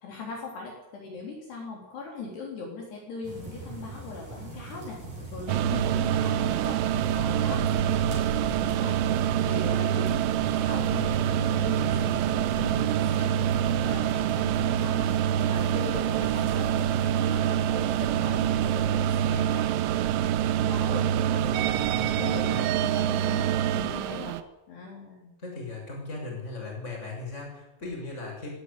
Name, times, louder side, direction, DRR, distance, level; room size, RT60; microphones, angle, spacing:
voice 1, 0.0-5.0 5.3-6.8 7.4-8.0 8.6-13.5 13.8-15.1 15.5-19.9 20.5-24.4 24.7-25.3, left 4 dB, 55° left, -1 dB, 5.2 m, -40 dB
sound 1, 3.2-20.5, right 2 dB, 40° right, 8.4 m, -41 dB
sound 2, 5.5-24.4, right 10 dB, 75° right, 3.1 m, -26 dB
voice 2, 6.9-7.7 21.5-22.6 25.4-28.5, left 3 dB, 15° left, 0 dB, 6.6 m, -38 dB
16.5 x 16.0 x 9.9 m, 0.98 s
omnidirectional pair, 6.0 m